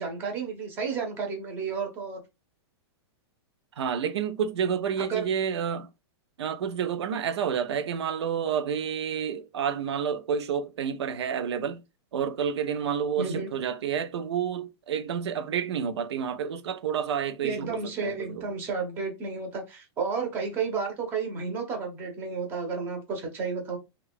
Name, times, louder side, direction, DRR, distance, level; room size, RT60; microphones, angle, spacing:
voice 1, 0.0-2.2 5.0-5.3 13.2-13.5 17.4-23.8, right 5 dB, 15° right, 0.7 m, -32 dB
voice 2, 3.8-5.9 6.4-11.8 12.1-18.4, right 7 dB, 85° right, 0.6 m, -29 dB
2.8 x 2.4 x 3.5 m
supercardioid pair, 180°, 14 cm